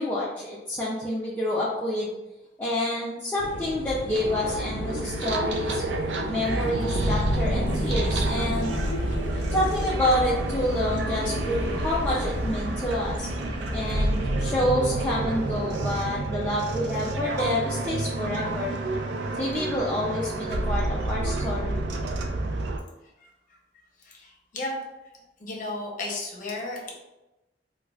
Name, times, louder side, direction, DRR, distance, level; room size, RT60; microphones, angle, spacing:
voice 1, 0.0-2.1 2.6-5.8 6.3-8.7 9.5-13.3 13.7-18.8 19.3-21.8, left 1 dB, 10° left, -8 dB, 0.4 m, -28 dB
sound 1, 3.4-11.9, left 2 dB, 85° left, 0.4 m, -35 dB
sound 2, 4.1-22.8, right 2 dB, 75° right, 0.4 m, -29 dB
sound 3, 11.2-16.2, right 1 dB, 35° right, 0.8 m, -37 dB
voice 2, 24.0-24.7 25.4-26.9, left 2 dB, 45° left, -1 dB, 0.8 m, -34 dB
4.6 x 2.3 x 2.3 m, 1.0 s
head